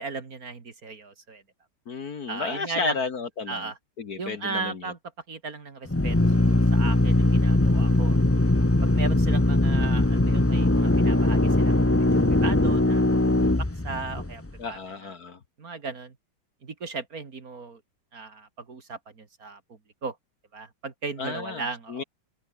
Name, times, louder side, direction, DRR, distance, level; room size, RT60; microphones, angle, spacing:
voice 1, 0.0-1.4 2.3-3.0 3.5-3.8 4.2-5.0 5.3-8.2 8.8-13.3 13.6-14.4 14.7-15.1 15.6-16.2 16.6-17.8 18.1-20.2 20.5-22.0, right 4 dB, 45° right, 2.4 m, -36 dB
voice 2, 1.9-3.7 4.0-4.8 14.6-15.4 21.2-22.0, left 4 dB, 50° left, 1.9 m, -32 dB
Drill, 5.8-14.5, left 2 dB, 15° left, 0.5 m, -21 dB
omnidirectional pair, 2.3 m